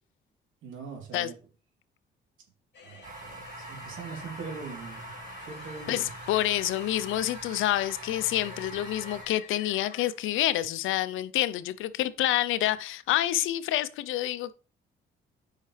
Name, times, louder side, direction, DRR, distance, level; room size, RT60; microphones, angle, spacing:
voice 1, 0.6-1.3 2.8-5.1 5.4-6.1, right 5 dB, 80° right, 3.1 m, -42 dB
sound 1, 2.7-10.1, left 7 dB, 60° left, 1.9 m, -48 dB
sound 2, 3.0-9.3, right 3 dB, 40° right, 2.1 m, -44 dB
voice 2, 5.9-14.5, left 13 dB, 85° left, 0.6 m, -28 dB
9.0 x 5.7 x 3.3 m
cardioid pair, 90°, 20 cm